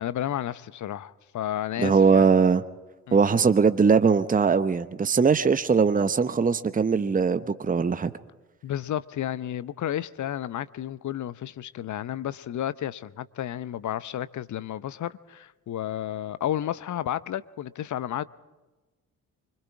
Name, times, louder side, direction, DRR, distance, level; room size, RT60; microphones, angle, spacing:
voice 1, 0.0-2.3 3.1-3.2 8.6-18.2, left 11 dB, 40° left, 0.9 m, -32 dB
voice 2, 1.8-2.6 3.1-8.1, right 5 dB, 20° right, 1.0 m, -21 dB
25.5 x 25.0 x 4.8 m
figure-of-eight pair, 40°, 44 cm